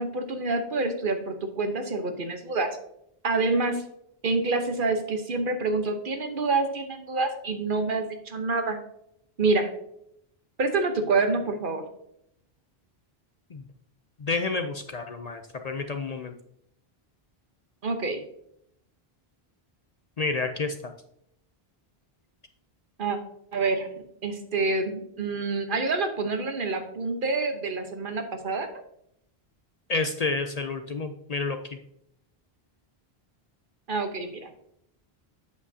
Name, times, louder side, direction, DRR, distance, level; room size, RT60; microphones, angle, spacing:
voice 1, 0.0-2.7 3.2-3.8 4.2-8.8 9.4-9.7 10.6-11.8 17.8-18.2 23.0-23.2 23.5-23.9 24.2-28.8 33.9-34.5, right 3 dB, 55° right, 7 dB, 1.1 m, -27 dB
voice 2, 14.2-16.3 20.2-20.9 29.9-31.6, left 3 dB, 50° left, 6 dB, 0.6 m, -29 dB
8.2 x 7.4 x 2.7 m, 0.74 s
omnidirectional pair, 1.0 m